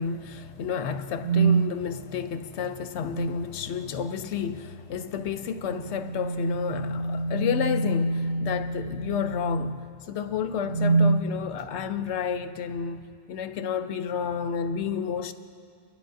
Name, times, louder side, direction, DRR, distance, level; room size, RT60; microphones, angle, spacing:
voice 1, 0.0-9.8 10.1-15.3, left 7 dB, 90° left, 0.9 m, -31 dB
sound 1, 1.2-1.7 3.0-3.5 5.7-9.9 10.6-11.3, right 4 dB, 45° right, 0.8 m, -26 dB
26.5 x 11.5 x 2.6 m
omnidirectional pair, 1.1 m